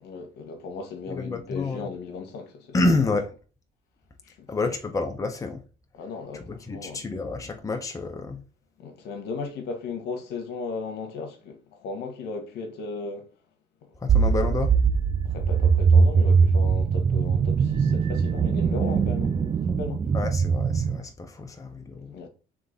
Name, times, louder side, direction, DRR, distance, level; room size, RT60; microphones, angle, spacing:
voice 1, 0.0-2.7 4.2-4.5 5.9-7.0 8.8-13.3 13.9-14.0 14.3-14.4 15.2-20.1 22.1-22.3, left 4 dB, 70° left, 1.2 m, -36 dB
voice 2, 1.1-1.9 2.7-3.3 4.5-5.6 6.3-8.4 14.0-14.8 20.1-22.3, left 3 dB, 20° left, 0.8 m, -28 dB
sound 1, 14.1-21.0, right 5 dB, 30° right, 0.5 m, -21 dB
3.8 x 3.4 x 3.7 m
cardioid pair, 95°, 18 cm